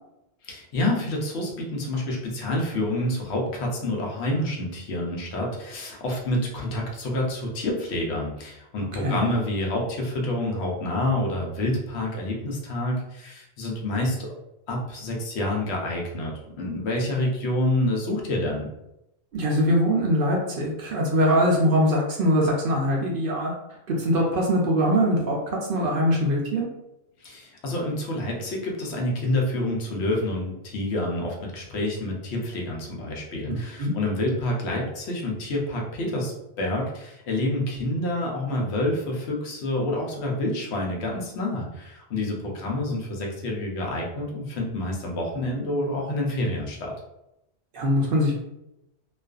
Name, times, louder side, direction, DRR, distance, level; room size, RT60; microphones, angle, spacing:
voice 1, 0.4-14.3 14.7-18.7 27.2-46.9, left 1 dB, 75° left, -1 dB, 0.9 m, -28 dB
voice 2, 19.3-23.5 23.9-26.7 33.5-33.9 47.7-48.3, equal, 60° right, -1 dB, 0.6 m, -22 dB
2.4 x 2.4 x 2.3 m, 0.86 s
omnidirectional pair, 1.1 m